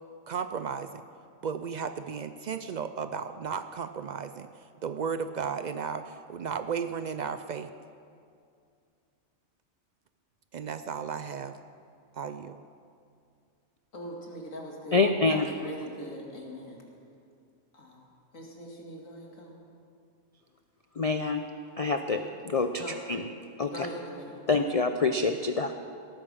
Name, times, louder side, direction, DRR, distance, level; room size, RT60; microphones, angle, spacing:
voice 1, 0.3-1.0 1.4-4.5 4.8-7.7 10.5-11.6 12.1-12.6, right 6 dB, 75° right, 10 dB, 0.4 m, -34 dB
voice 2, 13.9-16.8 17.7-18.0 18.3-19.6 22.0-22.2 22.8-23.0 23.7-24.5, equal, 85° left, -1 dB, 2.6 m, -41 dB
voice 3, 14.9-15.5 21.0-21.4 21.8-22.2 22.5-22.8 23.1-23.2 23.6-23.9 24.5-25.8, left 4 dB, 50° left, 7 dB, 0.4 m, -26 dB
17.5 x 9.6 x 6.3 m, 2.4 s
omnidirectional pair, 1.3 m